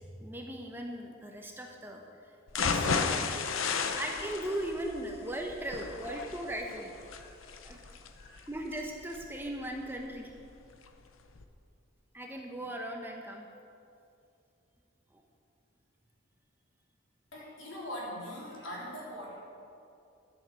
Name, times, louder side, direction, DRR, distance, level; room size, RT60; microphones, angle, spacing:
voice 1, 0.2-3.3 3.9-6.9 7.6-7.8 8.5-10.3 12.1-13.5 15.1-15.2, right 1 dB, 10° right, 1 dB, 0.8 m, -38 dB
sound 1, 2.5-10.5 10.9-11.0 11.3-11.4, left 5 dB, 90° left, 0.8 m, -34 dB
voice 2, 5.8-6.3 7.1-8.5 17.3-19.4, equal, 70° left, -5 dB, 3.3 m, -44 dB
11.5 x 7.1 x 7.4 m, 2.5 s
head